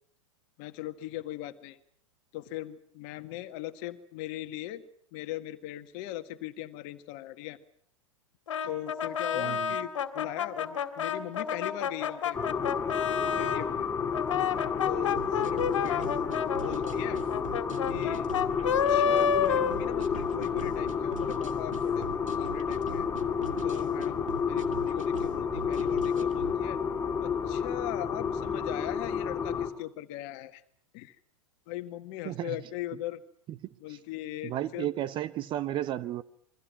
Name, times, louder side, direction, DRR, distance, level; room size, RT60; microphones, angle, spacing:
voice 1, 0.6-1.8 2.3-4.8 5.1-7.6 8.6-12.4 13.4-13.9 14.8-16.2 16.6-17.2 17.9-18.3 18.6-22.1 22.4-23.1 23.6-26.8 27.2-30.6 30.9-31.2 31.7-33.2 33.8-34.9, left 14 dB, 40° left, 1.7 m, -39 dB
Brass instrument, 8.5-13.7 14.1-20.4, left 7 dB, 60° left, 2.3 m, -30 dB
voice 2, 9.3-9.7 32.2-32.6 33.9-34.0 34.4-36.2, right 13 dB, 30° right, 0.9 m, -33 dB
sound 1, 12.3-29.7, left 6 dB, 15° left, 2.7 m, -31 dB
sound 2, 15.2-26.6, right 6 dB, 70° right, 2.0 m, -44 dB
29.0 x 23.0 x 5.9 m
figure-of-eight pair, 95°, 17 cm